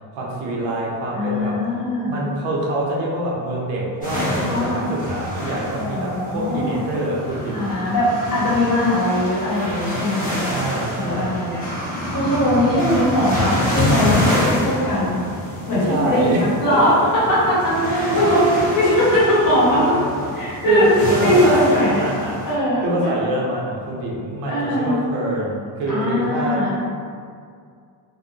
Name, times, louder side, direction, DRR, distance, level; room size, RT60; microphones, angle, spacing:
voice 1, 0.1-1.6 2.1-7.7 10.5-11.4 15.7-17.0 17.7-18.7 19.6-20.2 20.7-22.5 22.8-26.8, right 2 dB, 90° right, -3 dB, 0.7 m, -24 dB
voice 2, 1.1-2.2 4.5-4.9 5.7-6.8 7.5-10.6 10.9-11.7 12.1-15.2 15.7-18.5 18.8-20.0 20.3-22.1 22.4-22.8 24.4-25.0 25.9-26.8, left 1 dB, 50° left, -9 dB, 1.3 m, -20 dB
sound 1, 4.0-22.5, left 1 dB, 20° left, 1.0 m, -27 dB
2.6 x 2.1 x 2.6 m, 2.2 s
cardioid pair, 95°, 43 cm